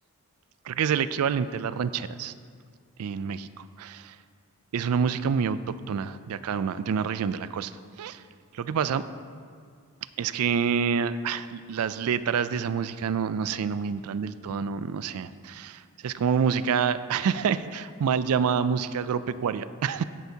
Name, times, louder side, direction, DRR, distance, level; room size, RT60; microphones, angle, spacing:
voice 1, 0.6-2.3 3.0-4.2 4.7-5.6 5.9-8.2 8.5-9.0 10.2-20.0, right 6 dB, 75° right, 14 dB, 0.4 m, -27 dB
15.5 x 7.8 x 2.8 m, 2.1 s
head